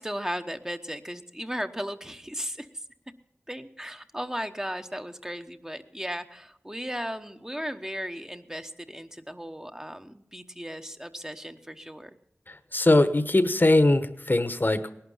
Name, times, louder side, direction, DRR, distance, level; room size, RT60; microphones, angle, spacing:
voice 1, 0.0-2.7 3.5-12.1, equal, 10° right, 6 dB, 1.0 m, -36 dB
voice 2, 12.5-14.9, left 2 dB, 45° left, 10 dB, 1.1 m, -21 dB
18.5 x 11.5 x 5.6 m, 0.78 s
wide cardioid pair, 40°, 5 cm